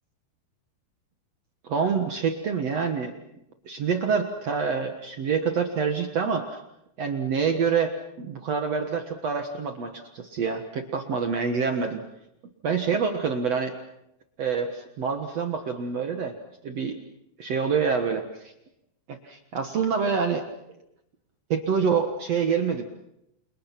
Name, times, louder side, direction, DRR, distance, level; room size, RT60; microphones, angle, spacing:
voice 1, 1.6-3.2 3.7-6.6 7.0-12.0 12.6-13.7 14.4-16.3 16.6-17.0 17.4-18.5 19.1-20.5 21.5-22.8, right 6 dB, 55° right, 6 dB, 1.9 m, -26 dB
29.0 x 28.5 x 5.9 m, 0.82 s
omnidirectional pair, 4.8 m